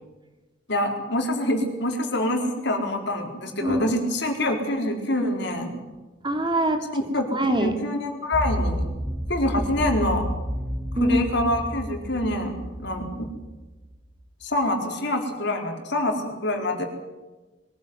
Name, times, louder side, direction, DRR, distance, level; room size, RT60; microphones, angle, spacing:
voice 1, 0.7-5.8 6.9-8.9 9.3-10.3 11.0-13.3 14.4-16.8, left 1 dB, 60° left, 3 dB, 4.4 m, -26 dB
voice 2, 6.2-6.8 7.3-7.7 11.0-11.2, right 1 dB, 25° right, 5 dB, 2.5 m, -23 dB
sound 1, 8.3-14.1, equal, 5° right, 2.0 m, -31 dB
23.0 x 15.0 x 9.7 m, 1.2 s
head